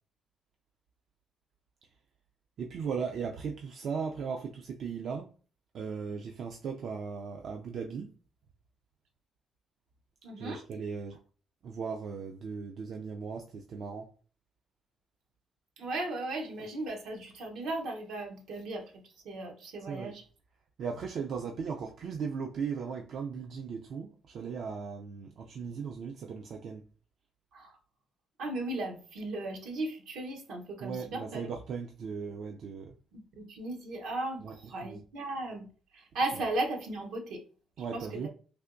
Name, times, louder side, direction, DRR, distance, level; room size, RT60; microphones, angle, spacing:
voice 1, 2.6-5.3 5.7-8.1 10.4-11.2 11.6-14.1 19.9-20.1 20.8-26.8 30.8-33.0 34.4-34.6 34.8-35.0 37.8-38.3, right 6 dB, 65° right, 0.3 m, -37 dB
voice 2, 10.2-10.6 15.8-20.2 27.5-27.8 28.4-31.4 33.1-35.7 35.9-37.4 37.9-38.3, right 2 dB, 85° right, 0.8 m, -36 dB
3.4 x 2.8 x 2.5 m
cardioid pair, 90°, 0 cm